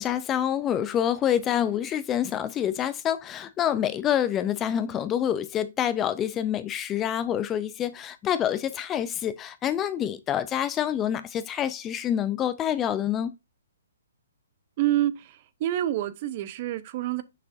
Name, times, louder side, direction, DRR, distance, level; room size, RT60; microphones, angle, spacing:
voice 1, 0.0-13.3, left 10 dB, 20° left, 0.5 m, -27 dB
voice 2, 14.8-17.2, right 13 dB, 40° right, 0.8 m, -27 dB
6.4 x 6.3 x 2.6 m
hypercardioid pair, 135°, 0 cm